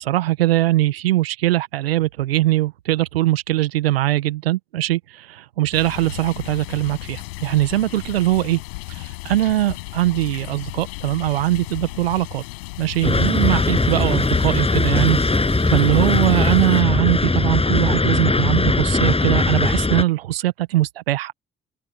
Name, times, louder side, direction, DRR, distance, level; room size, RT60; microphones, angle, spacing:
voice 1, 0.0-8.6 8.9-12.4 12.8-21.3, right 15 dB, 85° right, 1.4 m, -21 dB
sound 1, 5.7-16.8, left 25 dB, 80° left, 7.9 m, -35 dB
sound 2, 13.0-20.0, left 3 dB, 20° left, 7.5 m, -19 dB
open air
hypercardioid pair, 50°, 29 cm